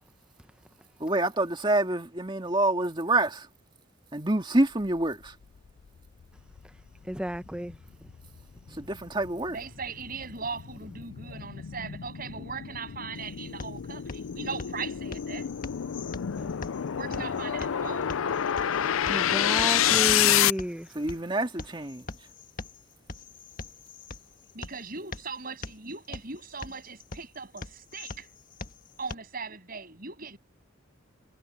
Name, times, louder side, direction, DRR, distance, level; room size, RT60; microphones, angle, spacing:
voice 1, 1.0-3.5 4.1-5.4 8.7-9.6 20.9-22.1, right 2 dB, 25° right, 2.2 m, -27 dB
sound 1, 5.8-5.9 6.4-20.5, left 10 dB, 90° left, 0.5 m, -29 dB
voice 2, 7.1-7.7 16.4-16.5 19.1-20.9, equal, 5° right, 0.9 m, -31 dB
voice 3, 9.5-15.5 16.9-18.8 24.5-28.3 29.0-30.4, right 5 dB, 45° right, 7.9 m, -39 dB
sound 2, 13.1-29.1, left 3 dB, 45° left, 1.6 m, -44 dB
head